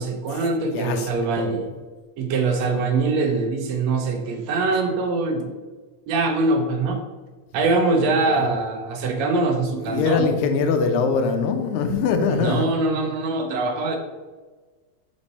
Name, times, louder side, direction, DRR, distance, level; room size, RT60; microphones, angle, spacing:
voice 1, 0.0-1.6 2.2-5.5 6.1-7.0 7.5-10.3 12.3-14.0, right 3 dB, 75° right, 4 dB, 1.8 m, -23 dB
voice 2, 0.7-1.1 1.4-1.6 2.6-2.8 8.0-8.5 9.8-12.7, left 5 dB, 85° left, 6 dB, 2.2 m, -23 dB
5.3 x 5.3 x 4.1 m, 1.3 s
omnidirectional pair, 3.4 m